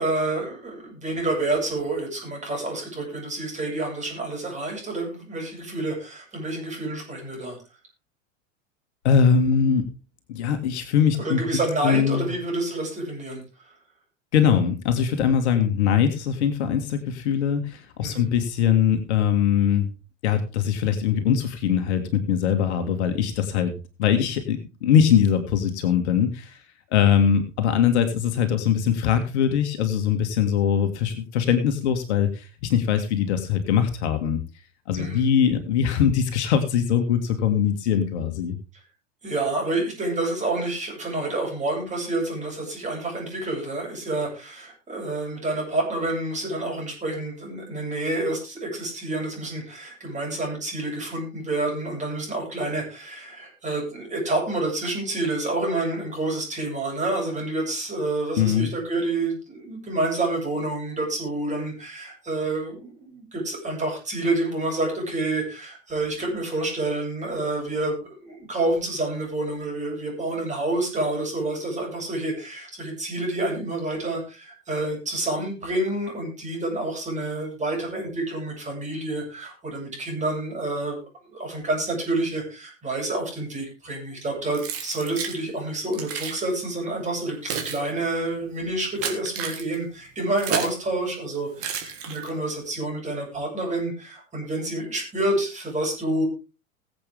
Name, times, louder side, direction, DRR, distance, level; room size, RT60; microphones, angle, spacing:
voice 1, 0.0-7.6 11.2-13.4 18.0-18.3 34.9-35.2 39.2-81.0 81.3-96.3, right 2 dB, 20° right, 0 dB, 7.9 m, -28 dB
voice 2, 9.0-9.9 10.3-11.4 11.8-12.3 14.3-19.9 20.2-23.7 24.0-26.6 26.9-34.4 34.9-38.6 58.4-58.7, left 8 dB, 55° left, 7 dB, 2.1 m, -22 dB
Keys jangling, 84.5-85.4 85.9-86.4 87.1-90.8 91.6-92.5, right 7 dB, 35° right, 3.5 m, -32 dB
20.5 x 8.1 x 3.6 m, 0.32 s
figure-of-eight pair, 85°, 39 cm